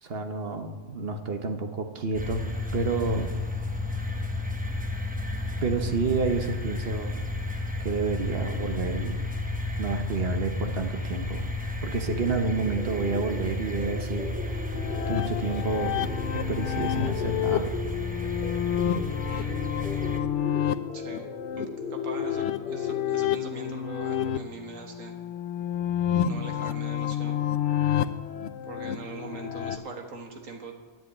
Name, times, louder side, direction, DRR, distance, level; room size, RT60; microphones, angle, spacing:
voice 1, 0.0-2.4 2.7-3.3 5.6-7.2 7.8-9.2 9.8-11.5 11.8-14.8 15.1-16.0 16.3-17.7, right 4 dB, 50° right, 6 dB, 1.1 m, -29 dB
sound 1, 2.1-20.2, left 2 dB, 10° right, 0.6 m, -32 dB
sound 2, 12.1-23.3, left 2 dB, 40° left, 1.7 m, -39 dB
sound 3, 14.7-29.8, left 10 dB, 70° left, 0.9 m, -30 dB
voice 2, 19.3-19.6 20.9-21.7 21.9-25.1 26.2-27.4 28.7-30.7, right 3 dB, 75° right, 3 dB, 1.8 m, -41 dB
10.0 x 7.7 x 8.5 m, 1.3 s
omnidirectional pair, 1.4 m